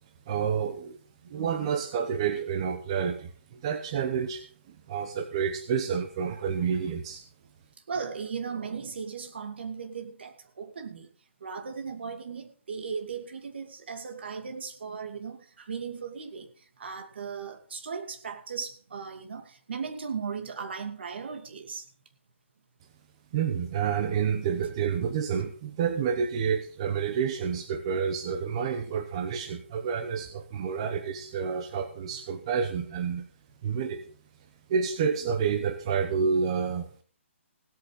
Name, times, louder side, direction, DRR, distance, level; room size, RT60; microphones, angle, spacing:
voice 1, 0.3-1.0 1.3-7.2 23.3-33.3 33.6-34.0 34.7-36.9, right 7 dB, 25° right, 7 dB, 0.9 m, -29 dB
voice 2, 1.2-1.8 7.9-11.1 11.4-21.9, right 5 dB, 55° right, 6 dB, 2.5 m, -37 dB
17.0 x 8.6 x 5.2 m, 0.43 s
hypercardioid pair, 175°, 7 cm